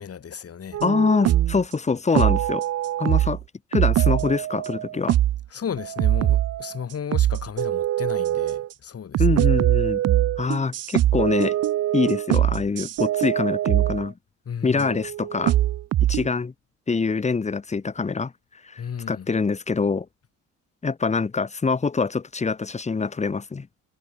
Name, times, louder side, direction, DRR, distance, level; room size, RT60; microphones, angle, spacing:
voice 1, 0.0-0.8 5.5-9.4 14.5-14.9 18.8-19.3, left 7 dB, 50° left, 7.7 m, -34 dB
sound 1, 0.7-1.6 2.2-3.4 3.7-5.4 5.8-6.8 7.1-8.7 9.1-14.1 14.8-16.3, right 13 dB, 55° right, 0.6 m, -22 dB
voice 2, 0.8-2.6 3.0-3.4 3.7-5.2 9.2-10.0 10.4-11.6 11.9-14.1 14.6-15.5 16.1-16.5 16.9-18.3 18.6-18.8 19.1-20.1 20.8-23.7, left 4 dB, 25° left, 1.2 m, -24 dB
cardioid pair, 90°, 30 cm